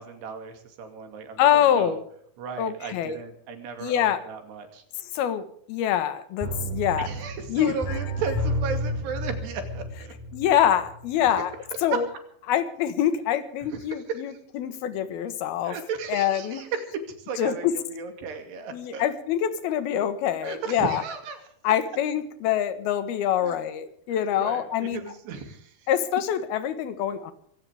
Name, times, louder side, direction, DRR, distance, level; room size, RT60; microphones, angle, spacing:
voice 1, 0.0-2.0 2.4-4.8 7.0-10.1 11.2-11.3 11.7-12.0 13.6-14.4 15.6-19.0 20.4-21.5 23.4-23.6 24.1-25.9, right 5 dB, 80° right, 7 dB, 4.6 m, -35 dB
voice 2, 1.4-2.0 2.6-3.2 3.8-4.2 5.1-7.1 7.5-7.7 10.3-11.5 11.8-12.1 12.5-15.7 16.1-16.6 17.4-17.7 18.7-21.0 21.6-25.0 25.9-27.3, left 10 dB, 70° left, 11 dB, 3.2 m, -25 dB
sound 1, 6.4-11.1 11.4-11.5, equal, 5° right, 5.4 m, -31 dB
23.5 x 16.5 x 3.5 m, 0.64 s
omnidirectional pair, 4.8 m